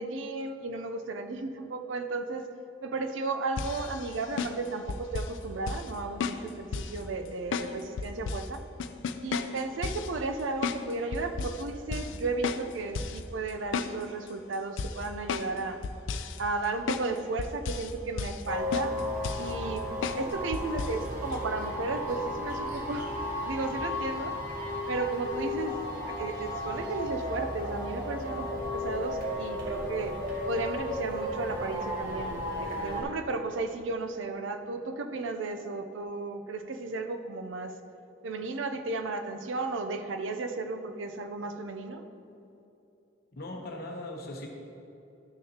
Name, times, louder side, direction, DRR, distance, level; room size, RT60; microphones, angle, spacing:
voice 1, 0.0-2.4 2.8-8.6 9.2-15.8 16.4-19.0 19.4-19.8 20.1-23.1 23.4-24.4 24.9-30.1 30.5-37.8 38.2-42.0, right 3 dB, 85° right, 7 dB, 0.6 m, -34 dB
sound 1, 3.6-5.4 5.7-5.9 6.2-7.0 7.5-8.5 8.8-10.1 10.6-10.8 11.1-11.6 11.9-12.2 12.4-13.2 13.5-14.3 14.8-15.6 15.8-16.4 16.9-17.1 17.4-17.9 18.2-18.5 18.7-19.5 20.0-20.2 20.5-21.0 21.3-21.4, left 5 dB, 80° left, 0.4 m, -33 dB
sound 2, 18.5-33.0, left 1 dB, 45° right, 1.9 m, -34 dB
voice 2, 43.3-44.5, left 1 dB, 55° left, 1 dB, 0.9 m, -39 dB
12.5 x 6.5 x 2.9 m, 2.9 s
head